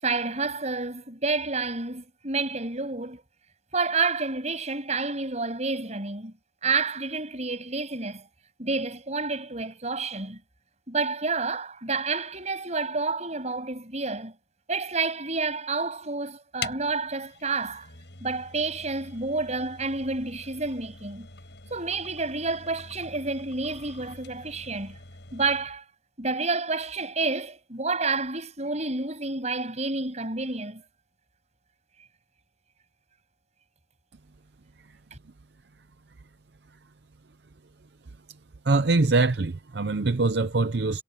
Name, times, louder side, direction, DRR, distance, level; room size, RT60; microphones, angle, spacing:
voice 1, 0.0-3.2 3.7-6.3 6.6-8.3 8.6-10.4 10.9-14.3 14.7-17.9 18.2-21.3 21.7-25.0 25.3-25.8 26.2-30.8 35.1-35.2, right 3 dB, 40° right, 7.3 m, -29 dB
sound 1, 16.6-25.7, left 5 dB, 75° left, 6.9 m, -44 dB
voice 2, 38.7-41.0, right 3 dB, 65° right, 0.7 m, -23 dB
head